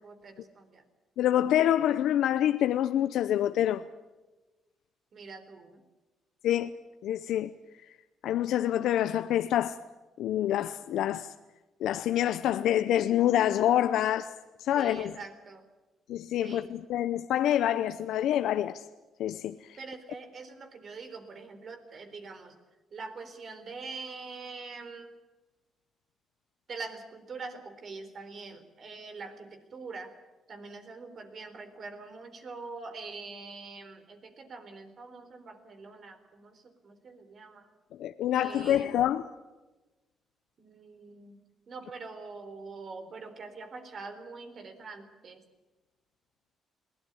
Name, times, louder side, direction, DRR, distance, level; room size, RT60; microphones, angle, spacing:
voice 1, 0.0-0.8 5.1-5.8 14.7-15.7 16.4-16.7 19.8-22.6 22.9-25.1 26.7-30.2 30.5-37.7 38.3-38.9 40.6-45.4, right 4 dB, 50° right, 3.9 m, -44 dB
voice 2, 1.2-3.8 6.4-6.7 7.0-7.5 8.2-9.8 10.2-11.3 11.8-15.2 16.1-18.9 19.2-19.8 38.0-39.3, left 11 dB, 80° left, 0.7 m, -27 dB
22.0 x 17.5 x 9.9 m
cardioid pair, 90°, 0 cm